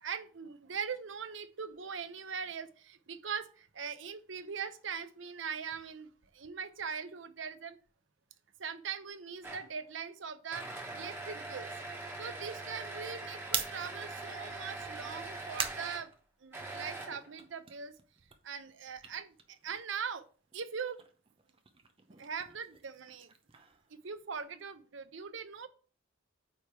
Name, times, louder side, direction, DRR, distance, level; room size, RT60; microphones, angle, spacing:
voice 1, 0.0-7.8 8.6-11.7 12.2-16.1 16.4-18.0 18.4-20.3 20.5-21.0 22.2-23.3 23.9-25.7, right 6 dB, 70° right, 11 dB, 0.7 m, -41 dB
sound 1, 9.4-9.8 10.5-16.1 16.5-17.4, right 2 dB, 10° right, 1.5 m, -42 dB
sound 2, 13.5-16.9 17.2-20.2 20.5-24.6, right 7 dB, 25° right, 0.7 m, -43 dB
8.8 x 3.4 x 4.6 m, 0.39 s
head